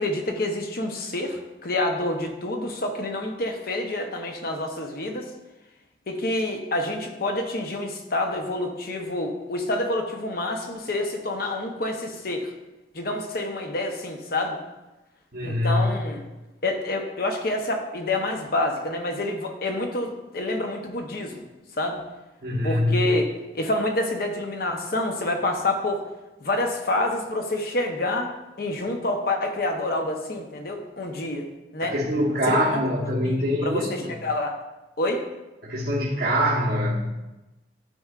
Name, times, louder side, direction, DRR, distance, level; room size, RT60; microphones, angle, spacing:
voice 1, 0.0-5.3 6.1-12.5 12.9-14.6 15.4-16.2 16.6-21.4 21.8-22.0 22.6-23.3 23.5-26.0 26.4-28.3 28.6-32.0 32.5-32.8 33.2-34.6 35.0-35.2, left 2 dB, 55° left, 4 dB, 0.8 m, -27 dB
voice 2, 15.3-15.9 22.4-23.0 31.8-34.1 35.6-37.1, equal, 60° right, -6 dB, 1.1 m, -24 dB
11.5 x 4.3 x 2.4 m, 1.1 s
head